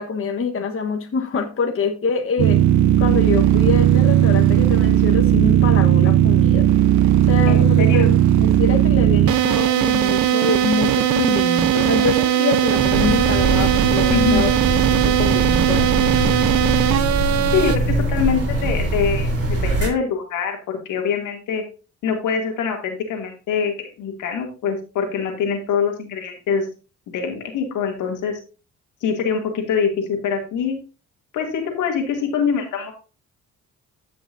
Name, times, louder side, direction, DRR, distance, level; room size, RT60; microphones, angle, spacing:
voice 1, 0.0-2.6 3.0-6.7 7.3-14.5 14.9-16.4, left 5 dB, 45° left, 3 dB, 1.4 m, -25 dB
sound 1, 2.4-17.8, right 11 dB, 70° right, 0.9 m, -17 dB
voice 2, 7.5-8.0 14.1-14.4 17.5-21.6 22.0-26.7 27.1-28.4 29.0-30.8 31.3-32.9, left 6 dB, 85° left, 2 dB, 2.6 m, -24 dB
sound 2, 12.8-19.9, right 2 dB, 50° right, 4.4 m, -22 dB
15.0 x 6.0 x 2.7 m, 0.33 s
cardioid pair, 90°, 30 cm